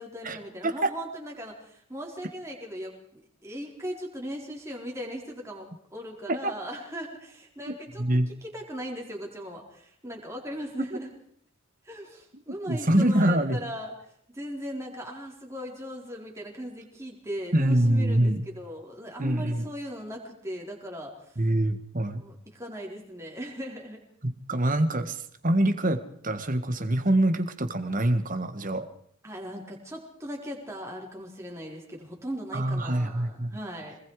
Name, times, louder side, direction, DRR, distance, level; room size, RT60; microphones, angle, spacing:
voice 1, 0.0-11.1 11.8-13.9 14.3-21.4 22.1-24.0 29.2-34.0, equal, 15° right, -1 dB, 4.1 m, -38 dB
voice 2, 0.6-0.9 6.3-6.5 7.7-8.3 12.7-13.6 17.5-18.4 19.2-19.6 21.4-22.2 24.2-28.9 32.5-33.6, right 1 dB, 35° right, 9 dB, 1.7 m, -25 dB
25.5 x 20.5 x 4.9 m, 0.65 s
head